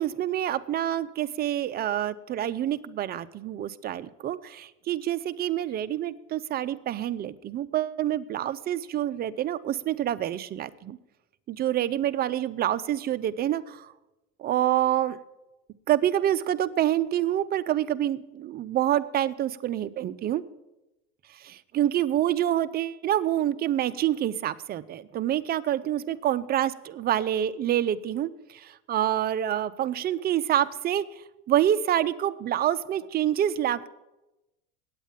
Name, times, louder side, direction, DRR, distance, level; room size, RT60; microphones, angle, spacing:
voice 1, 0.0-11.0 11.5-13.9 14.4-15.2 15.9-20.4 21.3-26.7 27.0-31.0 31.5-33.9, right 11 dB, 30° right, 13 dB, 0.5 m, -27 dB
8.8 x 8.3 x 7.3 m, 0.99 s
supercardioid pair, 110°, 30 cm